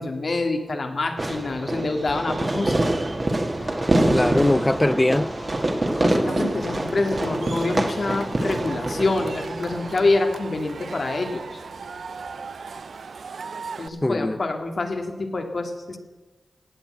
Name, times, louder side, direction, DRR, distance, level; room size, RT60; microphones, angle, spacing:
voice 1, 0.0-2.8 6.0-11.6 13.8-16.0, left 2 dB, 60° left, 2.1 m, -26 dB
Fireworks, 1.2-10.2, right 1 dB, 40° right, 1.9 m, -25 dB
Car passing by, 3.6-13.0, left 2 dB, 80° left, 6.8 m, -45 dB
voice 2, 4.1-5.3 14.0-14.4, left 1 dB, 20° left, 0.4 m, -21 dB
Cheering / Crowd, 6.3-13.9, right 5 dB, 80° right, 0.6 m, -37 dB
17.0 x 8.3 x 7.8 m
cardioid pair, 60°, 0 cm